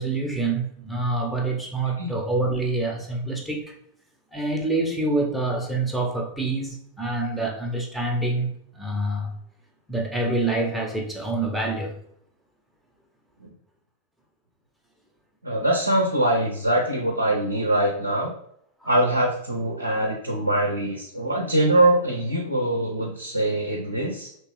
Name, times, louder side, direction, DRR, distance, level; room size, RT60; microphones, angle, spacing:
voice 1, 0.0-3.7 4.3-9.3 9.9-12.0 18.8-18.9, right 2 dB, ahead, -1 dB, 0.7 m, -26 dB
voice 2, 15.4-18.3 18.9-24.3, right 1 dB, 85° right, 0 dB, 0.5 m, -23 dB
3.2 x 3.0 x 3.0 m, 0.70 s
figure-of-eight pair, 90°, 0 cm